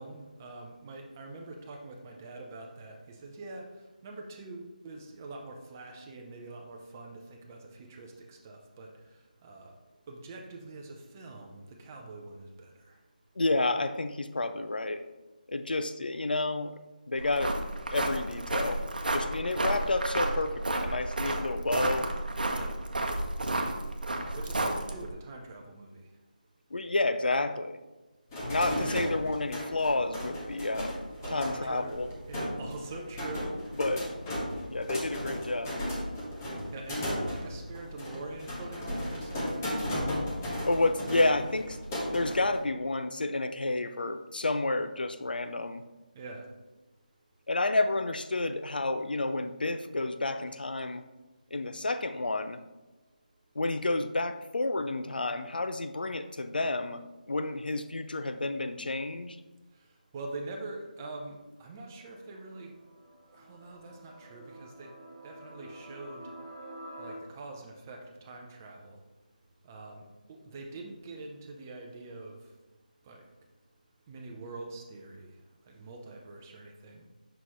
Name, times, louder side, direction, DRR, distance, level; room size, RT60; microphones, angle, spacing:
voice 1, 0.0-3.7 4.0-8.9 9.4-9.7 10.1-13.0 22.5-22.7 24.3-26.0 31.2-32.0 32.3-33.5 36.7-39.7 46.1-46.5 60.1-62.7 63.3-64.9 65.2-66.3 67.0-69.0 69.6-72.4 73.1-73.2 74.1-75.3 75.7-77.1, right 2 dB, 20° right, 1 dB, 0.6 m, -44 dB
voice 2, 13.4-15.0 15.5-16.7 17.1-17.6 17.9-18.8 19.1-22.1 24.6-24.7 26.7-27.8 28.5-31.0 31.3-32.1 33.8-34.1 34.7-35.8 40.6-45.8 47.5-51.0 51.5-52.6 53.6-59.4, left 2 dB, 80° left, 10 dB, 0.5 m, -30 dB
sound 1, 17.2-25.1, right 2 dB, 70° right, 0.8 m, -32 dB
sound 2, 28.3-42.6, equal, 20° left, 1.0 m, -35 dB
sound 3, 61.6-67.1, right 1 dB, 50° right, 1.0 m, -49 dB
6.0 x 5.7 x 3.1 m, 1.1 s
figure-of-eight pair, 165°, 5 cm